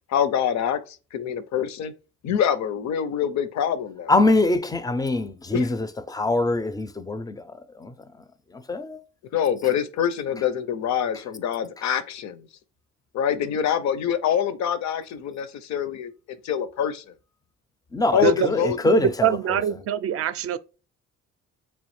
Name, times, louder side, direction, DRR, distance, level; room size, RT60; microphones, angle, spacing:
voice 1, 0.1-0.8 1.1-1.9 2.2-4.1 5.5-5.7 9.3-12.4 13.1-16.1 16.4-17.0 18.1-18.8, left 9 dB, 65° left, 0.6 m, -25 dB
voice 2, 4.1-7.4 7.8-7.9 8.7-9.0 17.9-19.3, left 2 dB, 15° left, 0.4 m, -23 dB
voice 3, 18.8-20.6, right 10 dB, 50° right, 0.4 m, -24 dB
3.6 x 3.1 x 3.1 m
cardioid pair, 90°, 30 cm